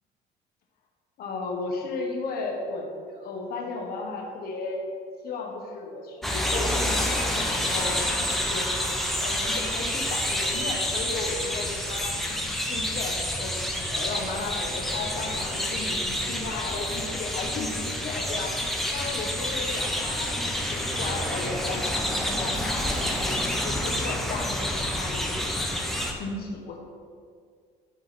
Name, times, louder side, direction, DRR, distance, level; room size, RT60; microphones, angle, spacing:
voice 1, 1.2-4.8 5.2-8.7 9.1-13.6 13.9-18.6 18.9-25.8 26.1-26.8, left 3 dB, 65° left, 0 dB, 1.1 m, -35 dB
sound 1, 6.2-26.1, left 1 dB, ahead, 0.8 m, -28 dB
11.0 x 4.0 x 4.1 m, 2.2 s
cardioid pair, 110°, 17 cm